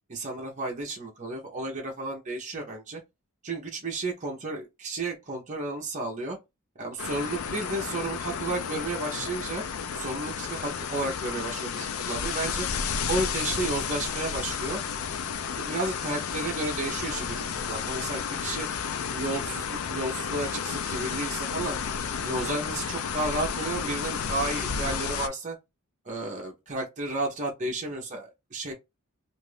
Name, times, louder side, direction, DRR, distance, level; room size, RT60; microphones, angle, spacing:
voice 1, 0.1-3.0 3.4-6.4 6.8-9.6 9.9-12.7 13.1-14.8 15.6-18.7 19.1-21.8 22.2-25.6 26.0-28.7, right 2 dB, 35° right, 0.7 m, -32 dB
sound 1, 7.0-25.3, left 6 dB, 75° left, 0.4 m, -32 dB
2.6 x 2.4 x 3.3 m
head